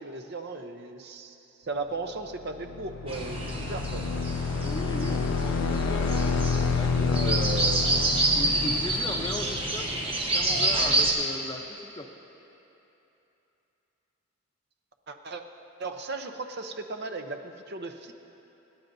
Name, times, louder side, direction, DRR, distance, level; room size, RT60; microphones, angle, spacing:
voice 1, 0.0-1.4 1.6-4.0 6.9-8.2 15.1-15.4 15.8-18.1, right 3 dB, 50° right, 6 dB, 0.7 m, -36 dB
sound 1, 2.4-10.2, left 4 dB, 80° left, 0.4 m, -29 dB
sound 2, 3.1-11.1, right 2 dB, 25° right, 1.2 m, -28 dB
voice 2, 4.6-7.4 8.4-12.1, left 1 dB, 20° left, 3 dB, 0.7 m, -38 dB
26.5 x 11.5 x 2.7 m, 3.0 s
head